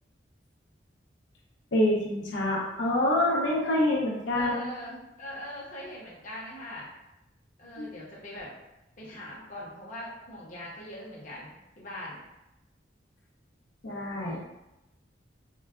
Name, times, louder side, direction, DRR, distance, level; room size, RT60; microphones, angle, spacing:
voice 1, 1.7-4.7 7.8-7.9 13.8-14.4, left 1 dB, 75° left, -4 dB, 0.6 m, -26 dB
voice 2, 4.3-6.9 7.6-8.5 9.0-12.2 14.2-14.4, left 1 dB, 45° left, -6 dB, 0.8 m, -41 dB
4.6 x 2.1 x 2.3 m, 0.95 s
head